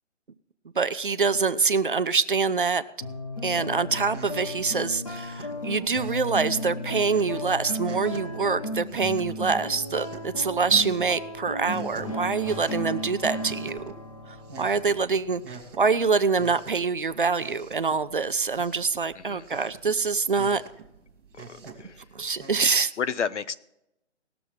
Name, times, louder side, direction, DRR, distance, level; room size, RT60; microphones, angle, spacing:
voice 1, 0.8-2.8 3.4-13.9 14.6-20.6 22.1-22.9, right 4 dB, 45° right, 12 dB, 0.5 m, -25 dB
sound 1, 3.0-15.8, left 1 dB, 25° left, 0.9 m, -35 dB
sound 2, 3.5-22.6, right 4 dB, ahead, 0.9 m, -47 dB
voice 2, 19.1-19.5 21.5-22.0 23.0-23.5, left 6 dB, 70° left, 15 dB, 0.8 m, -31 dB
19.0 x 6.9 x 4.7 m, 0.85 s
hypercardioid pair, 175°, 37 cm